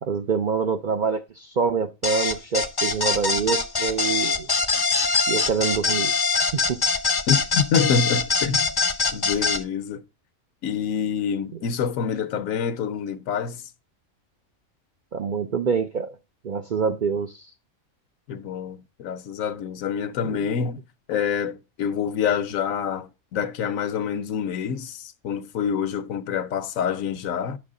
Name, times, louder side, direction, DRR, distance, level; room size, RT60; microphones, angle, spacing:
voice 1, 0.0-4.5 5.3-6.1 6.5-6.8 15.1-16.2 16.4-17.5 20.2-20.4, right 6 dB, 65° right, 0.5 m, -26 dB
sound 1, 2.0-9.6, left 4 dB, 30° left, 0.4 m, -23 dB
voice 2, 7.3-8.7 9.1-10.0 10.6-13.6 18.3-20.8 21.1-27.6, left 7 dB, 80° left, 1.1 m, -26 dB
9.6 x 6.2 x 3.7 m
omnidirectional pair, 1.4 m